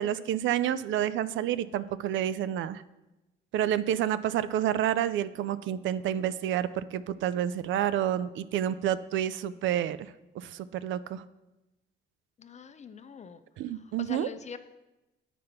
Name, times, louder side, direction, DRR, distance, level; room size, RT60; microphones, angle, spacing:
voice 1, 0.0-2.8 3.5-11.2 13.6-14.3, right 11 dB, 75° right, 15 dB, 0.4 m, -29 dB
voice 2, 12.4-13.4 13.7-14.6, left 6 dB, 35° left, 11 dB, 0.6 m, -44 dB
7.7 x 5.0 x 5.8 m, 0.99 s
cardioid pair, 90°, 20 cm